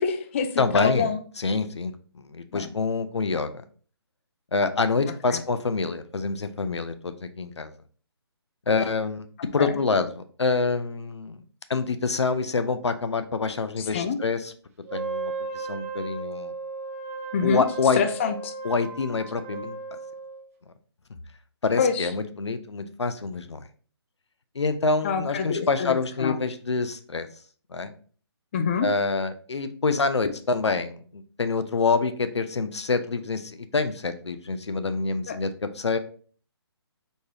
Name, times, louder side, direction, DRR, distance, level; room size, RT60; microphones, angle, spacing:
voice 1, 0.0-1.2 2.5-2.7 5.3-5.4 9.6-9.7 13.8-14.2 17.3-17.6 17.9-18.5 21.8-22.1 25.0-26.4 28.5-28.9 35.3-35.4, left 6 dB, 30° left, 8 dB, 0.3 m, -26 dB
voice 2, 0.6-1.1 1.4-3.6 4.5-7.7 8.7-9.3 9.5-11.4 11.7-14.5 14.9-16.5 17.4-18.0 18.6-19.8 21.6-23.6 24.6-27.3 27.7-27.9 28.8-36.0, left 4 dB, 85° left, 10 dB, 0.5 m, -26 dB
Wind instrument woodwind instrument, 14.9-20.5, right 4 dB, 35° right, 0.6 m, -36 dB
4.2 x 3.4 x 2.8 m, 0.44 s
figure-of-eight pair, 145°, 14 cm